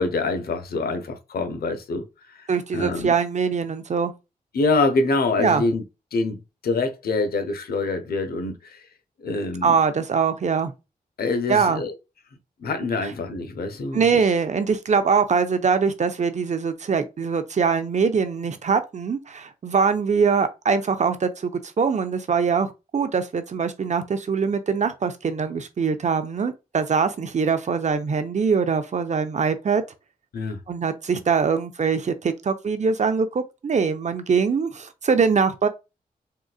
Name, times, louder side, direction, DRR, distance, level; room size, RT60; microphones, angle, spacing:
voice 1, 0.0-2.0 2.3-2.4 2.7-3.1 4.5-5.8 6.1-6.4 6.6-8.8 9.2-9.7 11.2-11.9 12.6-14.0 30.3-30.6, left 3 dB, 80° left, 0.7 m, -25 dB
voice 2, 2.5-4.1 5.4-5.6 9.6-10.7 11.5-11.8 13.9-21.5 21.8-29.8 30.7-35.7, right 5 dB, 50° right, 0.5 m, -22 dB
3.7 x 2.4 x 2.3 m
cardioid pair, 60°, 16 cm